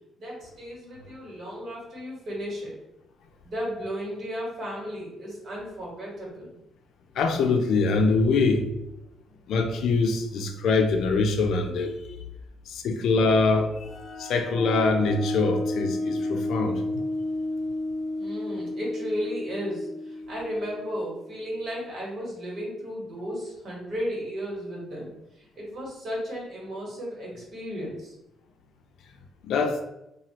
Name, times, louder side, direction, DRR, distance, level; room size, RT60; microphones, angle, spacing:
voice 1, 0.2-2.7 3.4-6.5 18.2-28.1, equal, 60° right, 1.4 m, -34 dB
voice 2, 7.1-8.7 9.5-12.2 12.7-13.9 14.2-16.8 29.4-29.8, left 3 dB, 75° left, 0.4 m, -24 dB
sound 1, 13.8-21.3, left 2 dB, 25° left, 0.7 m, -32 dB
2.9 x 2.3 x 2.9 m
cardioid pair, 90°, 0 cm